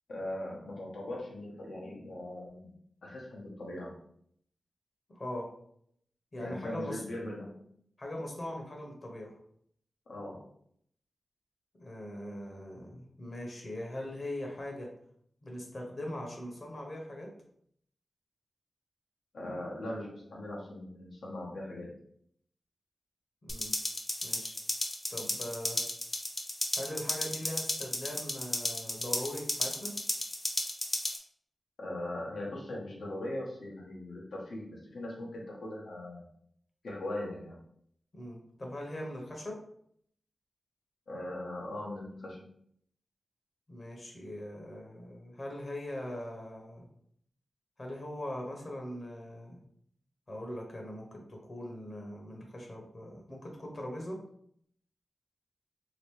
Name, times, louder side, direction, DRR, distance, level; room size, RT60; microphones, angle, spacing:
voice 1, 0.1-2.7 3.0-4.0 6.4-7.6 10.1-10.5 19.3-22.0 31.8-36.2 36.8-37.6 41.1-42.5, left 1 dB, 90° left, -3 dB, 0.9 m, -40 dB
voice 2, 5.1-5.5 6.3-7.0 8.0-9.3 11.8-14.9 15.4-17.3 23.4-23.7 24.2-24.6 25.1-25.8 26.7-29.9 38.1-39.6 43.7-46.8 47.8-49.6 50.3-54.2, left 1 dB, 50° left, 0 dB, 1.0 m, -41 dB
sound 1, 23.5-31.2, left 1 dB, 35° left, 0.6 m, -34 dB
2.9 x 2.6 x 3.1 m, 0.67 s
cardioid pair, 50°, 0 cm